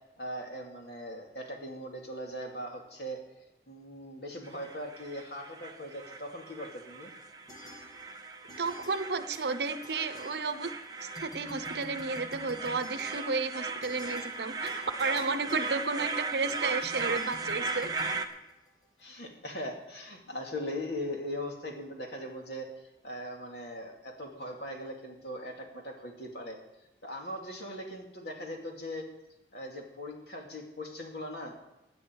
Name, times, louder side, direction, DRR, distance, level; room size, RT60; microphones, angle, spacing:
voice 1, 0.2-3.2 3.7-7.1 19.0-22.7 23.0-26.6 27.0-29.0 29.5-31.5, equal, 70° left, 1 dB, 2.7 m, -40 dB
sound 1, 4.4-18.3, right 4 dB, 20° right, 0.9 m, -38 dB
sound 2, 7.5-8.2 8.5-10.8 11.1-19.0, left 1 dB, 20° left, 1.5 m, -51 dB
voice 2, 8.6-10.7 11.0-17.9, right 4 dB, 70° right, 12 dB, 0.8 m, -32 dB
16.5 x 9.8 x 4.7 m, 0.97 s
head